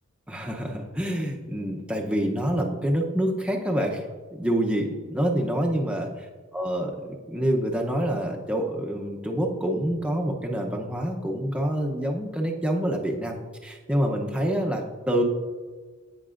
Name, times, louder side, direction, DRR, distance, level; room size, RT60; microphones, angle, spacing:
voice 1, 0.3-4.0 4.3-6.3 6.5-15.2, equal, 5° right, 1 dB, 0.7 m, -27 dB
16.0 x 6.0 x 2.5 m, 1.4 s
head